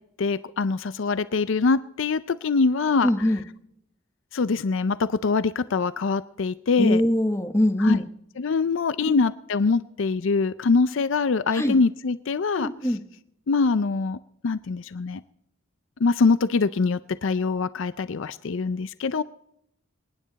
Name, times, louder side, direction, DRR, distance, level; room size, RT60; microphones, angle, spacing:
voice 1, 0.2-3.1 4.3-7.0 7.8-8.0 8.4-12.9 13.5-15.2 16.0-19.2, left 4 dB, 65° left, 15 dB, 0.5 m, -24 dB
voice 2, 3.0-3.4 6.8-8.0 11.5-11.8 12.5-13.0, left 1 dB, 15° left, 6 dB, 1.2 m, -22 dB
27.0 x 9.8 x 4.1 m, 0.77 s
head